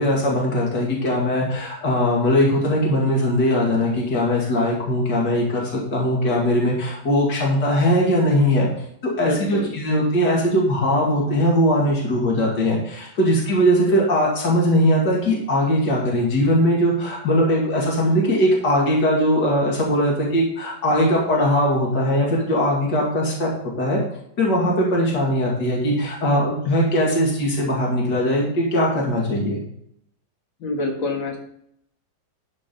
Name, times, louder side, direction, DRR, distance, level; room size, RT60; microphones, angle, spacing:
voice 1, 0.0-8.7 9.0-23.5 23.8-24.0 24.4-29.6, equal, 65° left, -3 dB, 2.9 m, -20 dB
voice 2, 9.2-9.7 30.6-31.4, left 2 dB, 80° left, 1 dB, 2.6 m, -26 dB
11.5 x 5.2 x 5.3 m, 0.70 s
omnidirectional pair, 2.0 m